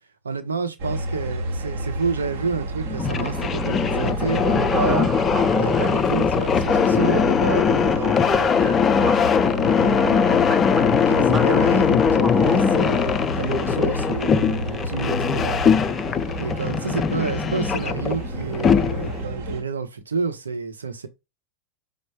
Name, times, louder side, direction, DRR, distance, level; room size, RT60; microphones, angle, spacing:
voice 1, 0.2-5.1 5.6-10.6 11.1-15.6 16.4-21.1, right 5 dB, 75° right, 0.8 m, -29 dB
sound 1, 0.8-19.6, right 1 dB, 50° right, 0.9 m, -31 dB
sound 2, 2.9-19.2, left 6 dB, 20° left, 0.3 m, -21 dB
sound 3, 4.3-16.1, right 2 dB, 5° right, 0.7 m, -34 dB
5.1 x 2.0 x 4.7 m
figure-of-eight pair, 90°, 0 cm